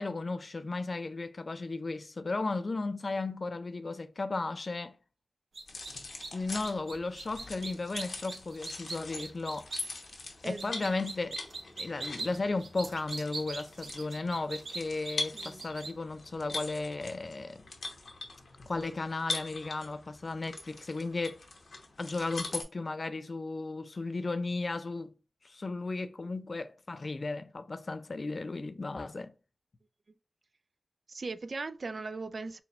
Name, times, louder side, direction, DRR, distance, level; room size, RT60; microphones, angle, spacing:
voice 1, 0.0-5.0 6.3-9.7 10.4-11.4 11.8-17.6 18.7-21.4 22.0-25.1 25.4-29.3, left 3 dB, 50° left, 0.4 m, -35 dB
sound 1, 5.5-5.9 6.2-6.3 6.6-9.8 10.6-15.9, right 3 dB, 90° right, 0.7 m, -40 dB
sound 2, 5.7-22.6, left 3 dB, 80° left, 1.0 m, -42 dB
voice 2, 10.4-11.1 15.3-15.7 31.1-32.6, right 3 dB, 60° right, 0.3 m, -40 dB
4.2 x 2.2 x 4.2 m
wide cardioid pair, 90°, 0 cm